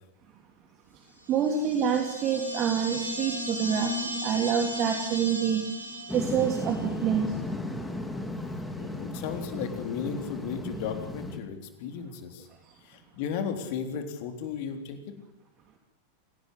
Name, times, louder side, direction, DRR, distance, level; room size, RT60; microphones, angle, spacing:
voice 1, 1.3-5.6 6.1-6.8 7.0-7.3, right 8 dB, 35° right, 4 dB, 3.0 m, -27 dB
sound 1, 1.3-6.7, left 1 dB, 85° right, 5.4 m, -35 dB
sound 2, 6.1-11.4, left 2 dB, 5° left, 3.4 m, -35 dB
voice 2, 8.8-12.5 12.8-15.2, left 7 dB, 50° left, 6 dB, 3.7 m, -35 dB
27.5 x 18.0 x 8.3 m, 0.85 s
figure-of-eight pair, 90°, 0 cm